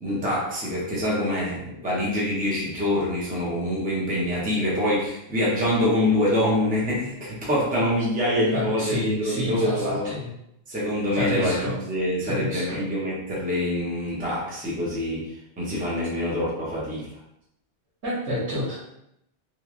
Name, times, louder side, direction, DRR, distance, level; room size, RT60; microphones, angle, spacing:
voice 1, 0.0-10.1 10.7-17.1, left 1 dB, 10° right, -6 dB, 0.7 m, -25 dB
voice 2, 8.5-10.3 11.1-11.8 12.2-12.8 18.0-18.7, left 1 dB, 90° right, -9 dB, 1.3 m, -29 dB
3.1 x 2.4 x 2.4 m, 0.81 s
omnidirectional pair, 1.1 m